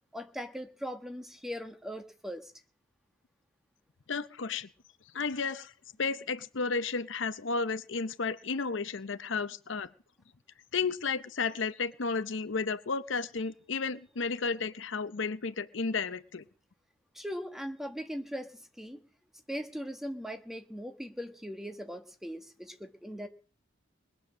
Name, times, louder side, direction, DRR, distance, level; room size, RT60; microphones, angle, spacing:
voice 1, 0.1-2.5 17.1-19.0 19.5-23.3, equal, ahead, 6 dB, 1.3 m, -40 dB
voice 2, 4.1-4.7 5.1-5.7 6.0-9.9 10.7-16.4, left 4 dB, 65° left, 13 dB, 0.7 m, -33 dB
21.0 x 8.5 x 6.2 m, 0.41 s
head